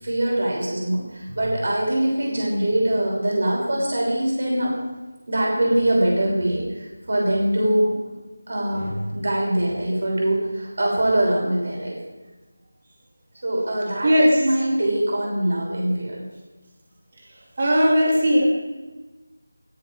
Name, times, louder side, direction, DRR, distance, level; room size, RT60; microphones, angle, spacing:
voice 1, 0.0-4.7 5.3-7.9 8.5-12.0 13.4-16.2, right 1 dB, 45° right, -3 dB, 6.3 m, -23 dB
voice 2, 14.0-14.4 17.6-18.5, equal, 25° right, -2 dB, 2.6 m, -18 dB
20.5 x 9.7 x 4.8 m, 1.2 s
figure-of-eight pair, 180°, 0 cm